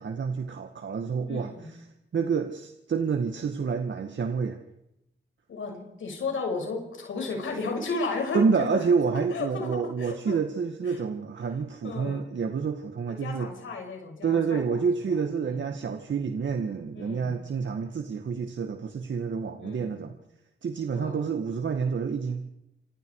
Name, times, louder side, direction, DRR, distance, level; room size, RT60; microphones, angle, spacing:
voice 1, 0.0-1.8 2.1-4.6 8.3-13.5 14.2-20.1 20.6-22.5, right 5 dB, 70° right, 5 dB, 2.0 m, -28 dB
voice 2, 1.3-1.7 5.5-8.8 9.3-10.4 11.8-12.3 13.2-15.2 15.4-15.6 16.9-17.4 19.6-20.1 20.9-21.3, left 3 dB, 85° left, 1 dB, 6.6 m, -34 dB
28.0 x 27.0 x 4.9 m, 0.84 s
cardioid pair, 50°, 20 cm